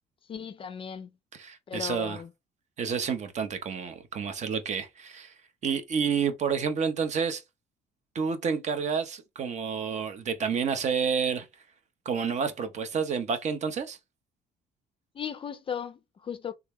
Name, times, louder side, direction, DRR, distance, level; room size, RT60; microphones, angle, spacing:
voice 1, 0.3-1.1 1.7-2.3 15.1-16.5, left 8 dB, 30° left, 0.4 m, -36 dB
voice 2, 1.3-2.2 2.8-5.3 5.6-7.4 8.1-11.5 12.1-14.0, right 6 dB, 45° right, 0.6 m, -29 dB
3.4 x 2.1 x 3.4 m
cardioid pair, 110°, 17 cm